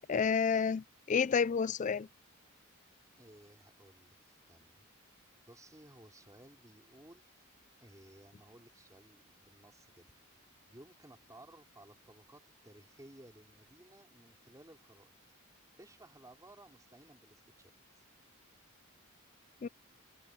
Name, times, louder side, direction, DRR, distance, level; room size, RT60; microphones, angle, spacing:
voice 1, 0.1-2.1 19.6-19.7, left 6 dB, 35° left, 0.4 m, -30 dB
voice 2, 3.2-4.9 5.2-7.4 7.8-10.1 10.7-15.1 15.8-18.0, right 1 dB, 15° right, 4.7 m, -58 dB
head